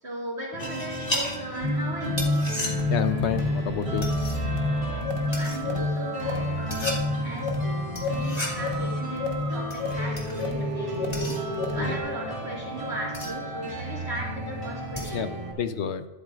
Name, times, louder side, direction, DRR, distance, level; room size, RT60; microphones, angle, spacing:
voice 1, 0.0-2.5 4.9-7.6 8.1-15.3, right 1 dB, 65° right, -4 dB, 2.7 m, -37 dB
sound 1, 0.5-15.5, right 1 dB, 25° right, 2.2 m, -35 dB
sound 2, 0.6-15.4, left 1 dB, 35° left, 2.3 m, -38 dB
sound 3, 1.6-12.0, left 1 dB, 50° left, 1.4 m, -29 dB
voice 2, 2.9-4.1 11.7-12.0 15.1-15.3 15.6-16.1, left 8 dB, 70° left, 10 dB, 1.0 m, -28 dB
12.0 x 11.5 x 2.5 m, 1.2 s
omnidirectional pair, 1.2 m